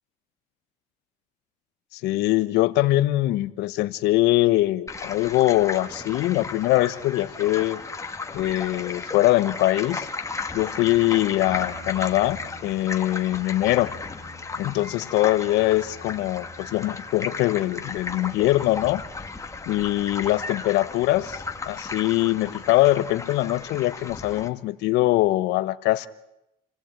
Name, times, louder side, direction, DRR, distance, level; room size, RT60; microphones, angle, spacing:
voice 1, 1.9-7.8 8.3-10.1 10.5-13.9 14.6-19.0 19.7-21.4 21.7-26.1, left 16 dB, 90° left, 14 dB, 1.1 m, -22 dB
sound 1, 4.9-24.5, left 4 dB, 20° left, 2.0 m, -35 dB
sound 2, 11.4-24.5, left 2 dB, 60° right, 6.6 m, -49 dB
29.0 x 17.5 x 8.8 m, 0.86 s
cardioid pair, 110°, 17 cm